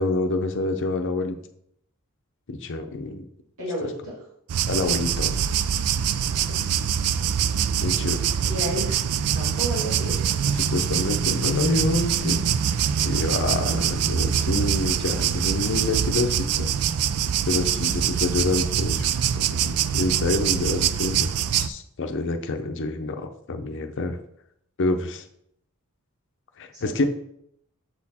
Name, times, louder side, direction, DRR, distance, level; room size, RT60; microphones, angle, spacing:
voice 1, 0.0-1.4 2.5-3.3 4.7-5.4 7.8-8.2 10.5-12.4 13.0-16.7 17.5-19.0 19.4-21.3 21.5-24.2 24.8-25.2 26.6-27.0, left 2 dB, 55° left, 6 dB, 0.7 m, -27 dB
voice 2, 3.6-4.1 6.5-6.9 8.5-9.0 9.3-10.1 26.7-27.0, equal, 70° right, -7 dB, 1.9 m, -32 dB
sound 1, 4.5-21.7, right 8 dB, 85° right, 0.4 m, -24 dB
7.2 x 4.3 x 4.2 m, 0.74 s
head